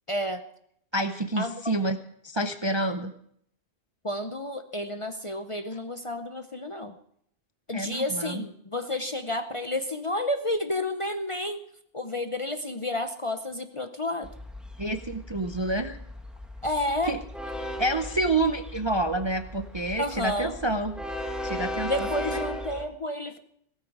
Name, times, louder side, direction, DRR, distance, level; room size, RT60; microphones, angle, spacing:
voice 1, 0.1-0.4 1.4-1.7 4.0-6.9 7.7-11.6 11.9-14.3 16.6-17.2 20.0-20.6 21.9-23.4, left 1 dB, 35° left, 8 dB, 0.6 m, -30 dB
voice 2, 0.9-2.0 2.2-3.1 7.7-8.4 14.8-16.0 17.1-17.2 17.8-21.0 21.4-22.1, right 2 dB, 30° right, 8 dB, 0.5 m, -28 dB
Train, 14.2-22.8, left 1 dB, ahead, 1.4 m, -37 dB
16.5 x 14.0 x 4.7 m, 0.68 s
omnidirectional pair, 1.2 m